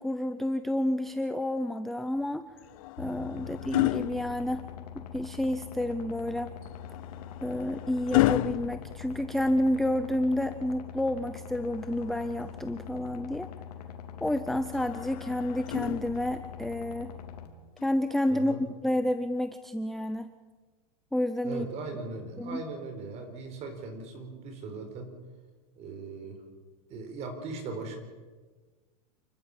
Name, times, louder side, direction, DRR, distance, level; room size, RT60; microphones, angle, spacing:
voice 1, 0.0-2.5 3.0-4.7 4.9-6.5 7.4-13.5 14.2-17.1 17.8-20.3 21.1-21.7 22.4-22.6, left 1 dB, ahead, 9 dB, 0.5 m, -30 dB
sound 1, 2.6-5.0 6.6-9.8 11.6-12.7 14.7-16.6 17.8-18.0, left 19 dB, 60° left, 0.6 m, -32 dB
sound 2, 3.0-17.5, left 8 dB, 85° left, 2.9 m, -43 dB
voice 2, 3.4-3.7 18.3-18.6 21.4-25.1 25.8-26.4 26.9-28.0, right 3 dB, 35° right, 6 dB, 4.6 m, -39 dB
29.0 x 12.5 x 7.4 m, 1.4 s
supercardioid pair, 150°, 20 cm